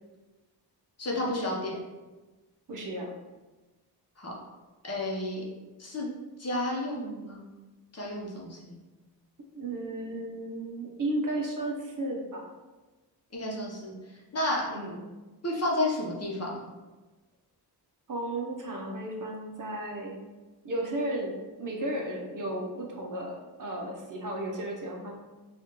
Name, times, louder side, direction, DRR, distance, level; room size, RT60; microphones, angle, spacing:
voice 1, 1.0-1.8 4.2-4.3 4.8-5.4 5.8-6.1 6.4-7.4 7.9-8.8 13.3-13.9 14.3-14.7 15.4-16.6, left 1 dB, 40° left, -3 dB, 0.8 m, -31 dB
voice 2, 2.7-3.1 9.5-12.5 14.7-15.0 18.1-20.2 20.6-21.3 21.6-25.2, right 1 dB, 50° right, 0 dB, 0.7 m, -34 dB
4.8 x 2.4 x 2.9 m, 1.2 s
wide cardioid pair, 120°, 40 cm